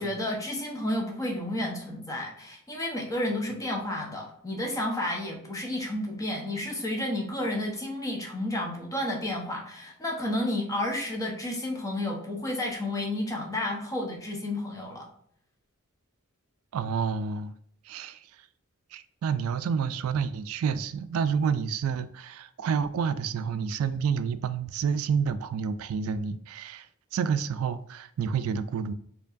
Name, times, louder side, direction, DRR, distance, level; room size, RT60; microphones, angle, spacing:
voice 1, 0.0-15.1, left 1 dB, 15° left, 0.8 m, -31 dB
voice 2, 16.7-17.5 17.8-18.4 18.9-26.9 27.1-28.9, right 6 dB, 80° right, 0.3 m, -29 dB
4.5 x 2.8 x 2.5 m
head